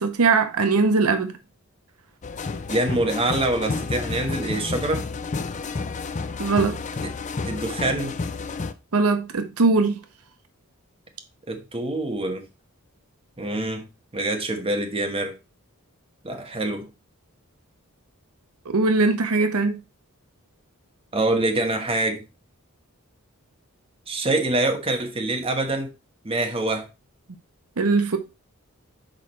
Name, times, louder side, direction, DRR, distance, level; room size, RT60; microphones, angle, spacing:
voice 1, 0.0-1.3 6.4-6.8 8.9-10.0 18.7-19.8 27.8-28.2, right 3 dB, 85° right, 0.9 m, -20 dB
sound 1, 2.2-8.7, left 4 dB, 35° left, 0.5 m, -30 dB
voice 2, 2.7-5.1 7.0-7.1 7.4-8.2 11.5-12.5 13.4-13.8 14.1-15.4 16.2-16.9 21.1-22.2 24.1-25.9 26.2-26.9, right 2 dB, 25° right, 1.3 m, -25 dB
6.5 x 4.8 x 4.2 m
head